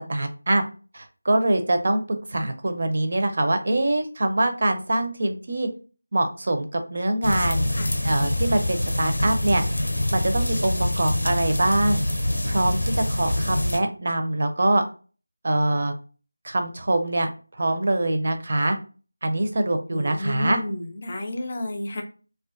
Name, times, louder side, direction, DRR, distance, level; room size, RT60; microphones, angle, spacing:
voice 1, 0.1-0.7 0.9-5.7 6.1-7.7 8.0-9.6 10.1-12.0 12.4-14.8 15.4-15.9 16.4-18.8 19.2-20.6, right 1 dB, 45° right, 7 dB, 0.4 m, -24 dB
sound 1, 7.2-13.8, left 1 dB, 85° left, 0.7 m, -25 dB
voice 2, 19.9-22.0, left 1 dB, 35° left, 5 dB, 0.4 m, -30 dB
2.3 x 2.3 x 2.4 m, 0.36 s
figure-of-eight pair, 170°, 0 cm